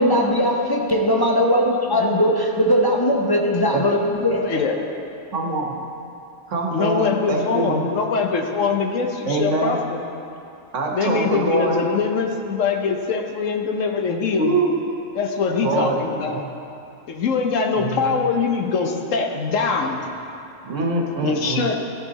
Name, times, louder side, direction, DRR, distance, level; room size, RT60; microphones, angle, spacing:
voice 1, 0.0-4.6, equal, 25° left, -1 dB, 0.6 m, -19 dB
voice 2, 1.9-2.3 4.4-4.7 6.7-10.0 10.9-14.6 15.1-16.4 17.1-20.1 21.2-21.8, left 5 dB, 85° left, 3 dB, 1.2 m, -23 dB
voice 3, 5.3-5.7 6.5-7.8 9.2-9.8 10.7-11.8 14.3-14.7 15.6-16.0 16.3-16.5 17.7-18.0 20.6-21.6, right 3 dB, 75° right, 0 dB, 1.5 m, -23 dB
14.0 x 6.8 x 4.0 m, 2.7 s
omnidirectional pair, 1.3 m